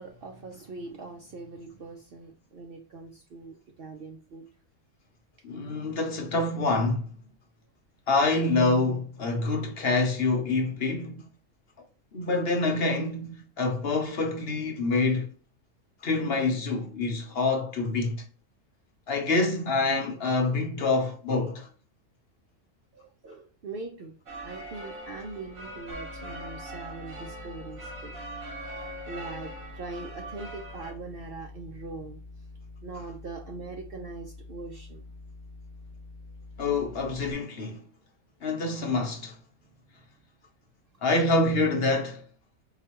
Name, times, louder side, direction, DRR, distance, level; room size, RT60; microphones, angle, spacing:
voice 1, 0.0-4.5 22.9-28.2 29.1-32.2 32.8-35.0, right 3 dB, 60° right, 0.6 m, -42 dB
voice 2, 5.4-7.1 8.1-11.3 12.1-15.3 16.0-18.2 19.1-21.7 36.6-37.8 38.4-39.4 41.0-42.2, left 3 dB, 55° left, 0.9 m, -26 dB
sound 1, 24.3-30.9, right 1 dB, 80° right, 1.7 m, -41 dB
sound 2, 25.9-37.3, left 3 dB, 85° left, 0.4 m, -46 dB
4.8 x 2.3 x 2.9 m
omnidirectional pair, 1.4 m